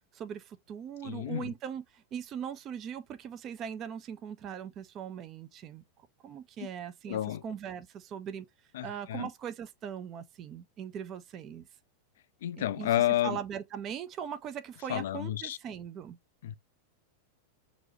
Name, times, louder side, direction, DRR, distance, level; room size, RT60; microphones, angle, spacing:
voice 1, 0.1-5.8 6.2-8.5 8.8-11.7 12.6-16.2, right 8 dB, 30° right, 0.4 m, -40 dB
voice 2, 1.0-1.5 7.1-7.4 8.7-9.3 12.4-13.4 14.9-15.6 16.4-16.6, left 12 dB, 60° left, 0.3 m, -30 dB
6.0 x 2.6 x 3.0 m
figure-of-eight pair, 90°, 0 cm